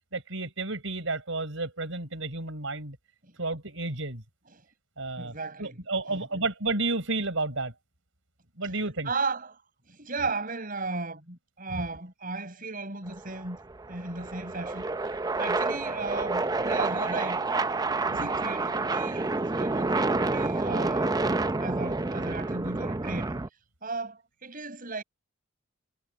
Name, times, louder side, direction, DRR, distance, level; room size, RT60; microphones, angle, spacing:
voice 1, 0.1-3.0 3.4-4.2 5.0-7.7 8.6-9.1 11.7-11.8 18.1-18.3, right 3 dB, 70° right, 5.1 m, -31 dB
voice 2, 5.2-5.8 6.1-6.4 9.0-9.6 9.9-13.6 13.9-14.9 15.3-17.4 18.1-21.2 21.6-23.3 23.8-25.0, right 3 dB, 40° right, 7.5 m, -35 dB
sound 1, 13.1-23.5, right 3 dB, 20° right, 0.5 m, -29 dB
head